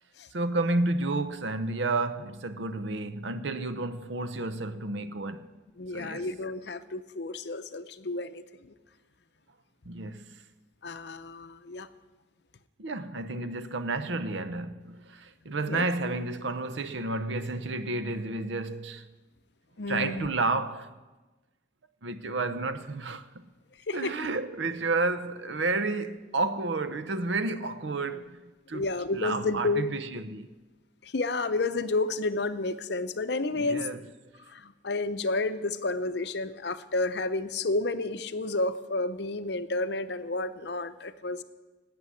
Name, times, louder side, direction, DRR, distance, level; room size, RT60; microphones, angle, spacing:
voice 1, 0.3-5.5 5.9-6.3 9.8-10.4 12.8-19.1 19.9-20.9 22.0-23.2 23.9-28.4 28.7-28.8 29.1-30.5 33.5-34.1, right 3 dB, 70° right, 0.8 m, -31 dB
voice 2, 5.8-8.7 10.8-11.9 15.7-15.9 19.8-20.3 23.9-24.1 28.7-29.9 31.0-33.9 34.5-41.4, left 2 dB, 55° left, 0.7 m, -31 dB
12.5 x 8.7 x 9.7 m
head